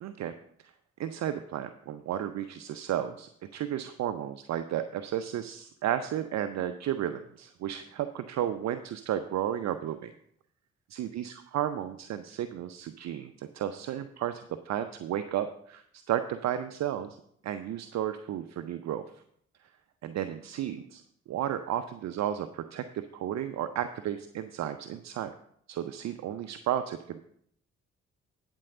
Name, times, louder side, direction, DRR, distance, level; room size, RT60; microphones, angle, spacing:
voice 1, 0.0-0.3 1.0-10.1 10.9-17.2 17.4-19.0 20.0-21.0 21.3-25.3 25.7-27.2, right 11 dB, 50° right, 10 dB, 0.6 m, -33 dB
10.5 x 4.6 x 6.6 m, 0.69 s
figure-of-eight pair, 40°, 36 cm